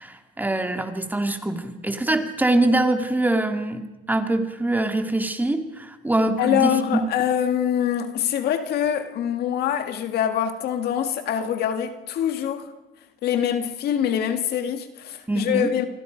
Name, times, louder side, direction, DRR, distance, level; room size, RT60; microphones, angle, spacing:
voice 1, 0.0-7.0 15.3-15.7, right 2 dB, 10° right, 2.3 m, -24 dB
voice 2, 6.4-12.7 13.2-15.9, left 9 dB, 70° left, 2.0 m, -24 dB
28.0 x 23.5 x 5.2 m
cardioid pair, 110°, 17 cm